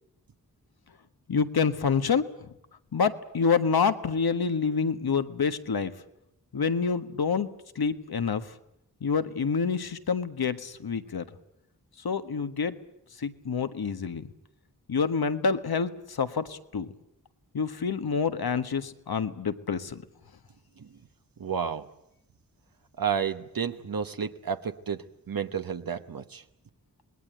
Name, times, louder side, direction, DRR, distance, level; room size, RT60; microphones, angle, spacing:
voice 1, 1.3-2.2 2.9-5.9 6.5-7.5 7.7-8.5 9.0-11.2 12.0-12.7 13.2-14.3 14.9-16.9 17.5-20.0, left 5 dB, 85° left, 10 dB, 1.5 m, -27 dB
voice 2, 21.4-21.9 23.0-26.4, right 7 dB, 70° right, 8 dB, 1.1 m, -31 dB
27.0 x 20.5 x 8.9 m, 0.83 s
wide cardioid pair, 80°, 36 cm